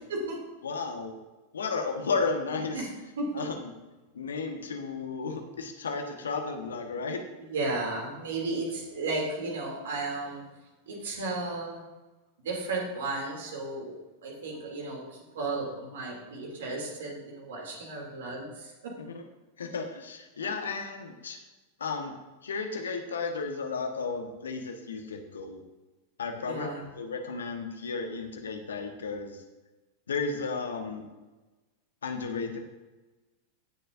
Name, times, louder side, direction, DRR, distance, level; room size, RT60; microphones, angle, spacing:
voice 1, 0.6-1.2 1.5-2.9 3.3-3.7 4.1-7.2 19.0-19.2 19.6-21.4 21.8-22.1 22.4-25.6 26.2-29.4 30.1-31.1 32.0-32.6, left 4 dB, 70° left, 4 dB, 1.3 m, -33 dB
voice 2, 7.4-10.4 10.9-11.8 12.4-15.0 15.3-18.9 26.4-26.8, right 2 dB, 60° right, -1 dB, 2.7 m, -34 dB
17.0 x 6.8 x 2.6 m, 1.1 s
figure-of-eight pair, 90°, 0 cm